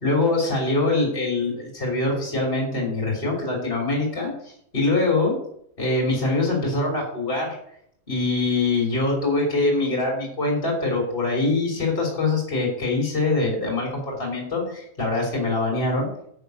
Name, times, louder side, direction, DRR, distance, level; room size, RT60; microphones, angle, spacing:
voice 1, 0.0-5.3 5.8-7.6 8.1-16.1, left 2 dB, 40° left, -1 dB, 3.5 m, -23 dB
10.0 x 5.3 x 8.1 m, 0.70 s
omnidirectional pair, 1.5 m